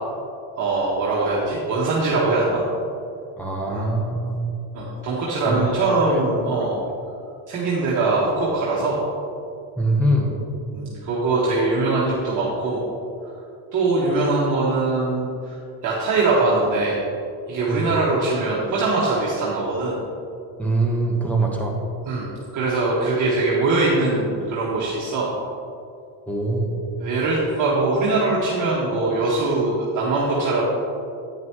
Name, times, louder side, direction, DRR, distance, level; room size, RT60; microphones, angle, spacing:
voice 1, 0.6-2.6 3.7-3.9 4.7-6.8 7.5-9.0 10.7-12.8 13.7-17.0 17.5-20.0 22.1-25.3 27.0-30.6, right 3 dB, 40° right, -7 dB, 1.6 m, -22 dB
voice 2, 3.4-4.3 5.4-6.2 9.8-10.3 17.7-17.9 20.6-21.8 26.3-26.8, right 1 dB, 5° left, -1 dB, 1.3 m, -23 dB
10.5 x 9.4 x 3.1 m, 2.5 s
cardioid pair, 150°, 49 cm